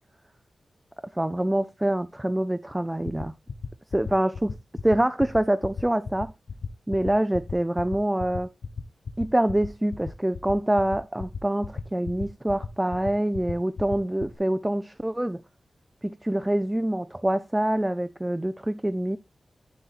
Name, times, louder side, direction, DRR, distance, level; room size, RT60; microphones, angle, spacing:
voice 1, 1.1-3.3 3.9-4.6 4.8-6.3 6.9-8.5 9.2-15.4 16.0-19.2, right 1 dB, 10° right, 0.3 m, -25 dB
sound 1, 3.0-14.4, left 6 dB, 80° left, 0.7 m, -34 dB
10.0 x 5.7 x 2.3 m
wide cardioid pair, 120°, 0 cm